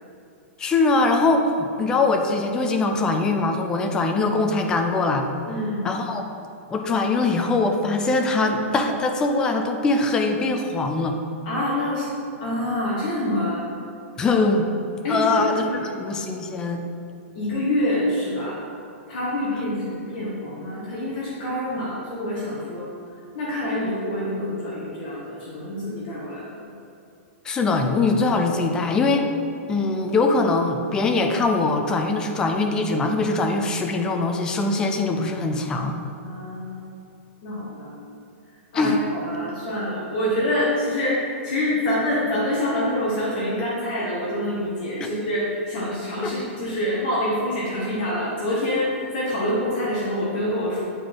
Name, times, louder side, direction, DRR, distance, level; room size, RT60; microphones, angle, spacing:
voice 1, 0.6-5.3 5.8-6.2 6.7-11.2 14.2-14.7 15.1-16.8 27.5-29.3 29.7-35.9 38.7-39.0 45.0-45.1 46.2-46.3, left 3 dB, 10° left, 4 dB, 0.4 m, -22 dB
voice 2, 5.4-5.9 11.4-12.1 12.4-13.6 15.0-15.9 17.3-18.6 19.1-22.9 23.3-26.6 36.2-37.0 37.4-37.9 38.7-50.8, left 1 dB, 35° left, -6 dB, 1.4 m, -26 dB
8.9 x 4.0 x 4.7 m, 2.7 s
hypercardioid pair, 170°, 7 cm